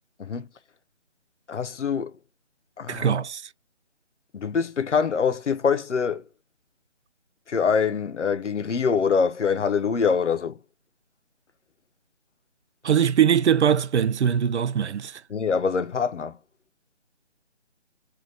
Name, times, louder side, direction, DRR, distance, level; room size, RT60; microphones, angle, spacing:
voice 1, 1.5-2.1 2.8-3.1 4.3-6.2 7.5-10.6 15.3-16.4, left 6 dB, 80° left, 0.8 m, -24 dB
voice 2, 2.9-3.4 12.8-15.2, right 8 dB, 75° right, 0.5 m, -21 dB
3.2 x 2.6 x 4.0 m
figure-of-eight pair, 170°, 35 cm